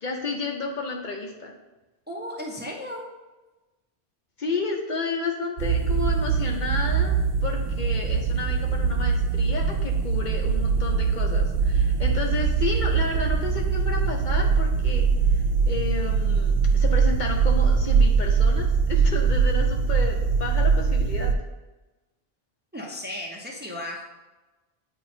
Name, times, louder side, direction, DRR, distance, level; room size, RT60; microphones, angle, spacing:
voice 1, 0.0-1.5 4.4-15.1 15.3-21.3, left 3 dB, 50° left, 0 dB, 0.8 m, -31 dB
voice 2, 2.1-3.0 22.7-24.0, left 1 dB, 10° right, -1 dB, 0.6 m, -35 dB
sound 1, 5.6-21.3, right 5 dB, 75° right, 0.8 m, -22 dB
8.3 x 3.0 x 4.3 m, 1.1 s
omnidirectional pair, 1.0 m